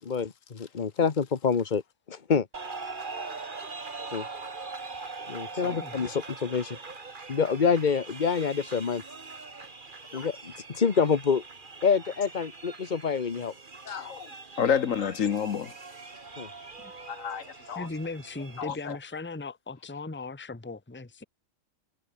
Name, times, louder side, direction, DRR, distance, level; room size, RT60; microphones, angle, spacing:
voice 1, 0.1-1.8 2.1-2.5 4.1-4.2 5.3-6.8 7.3-9.0 10.1-11.4 11.8-13.5 13.9-14.0 16.4-16.5, left 6 dB, 35° left, 1.3 m, -27 dB
sound 1, 2.5-18.6, right 4 dB, 40° right, 2.0 m, -42 dB
voice 2, 13.8-14.3 14.6-15.7 17.0-17.9 18.6-19.0, left 7 dB, 75° left, 1.5 m, -30 dB
voice 3, 17.8-21.2, left 3 dB, 10° left, 1.1 m, -38 dB
omnidirectional pair, 1.4 m